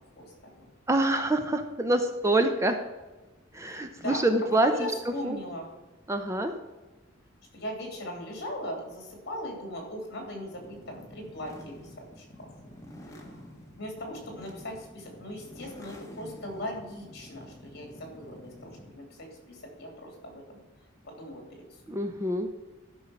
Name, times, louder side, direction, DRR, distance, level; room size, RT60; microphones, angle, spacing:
voice 1, 0.2-0.7 3.6-4.2 4.6-5.7 7.5-12.5 13.0-13.4 13.7-20.6 21.0-22.0, equal, 55° left, 2 dB, 3.0 m, -39 dB
voice 2, 0.9-2.8 3.5-4.9 5.2-5.4 6.1-6.5 21.9-22.5, right 1 dB, 15° right, 6 dB, 0.6 m, -26 dB
sound 1, 10.5-19.0, equal, 15° left, 1.4 m, -49 dB
12.0 x 5.5 x 5.9 m, 1.1 s
head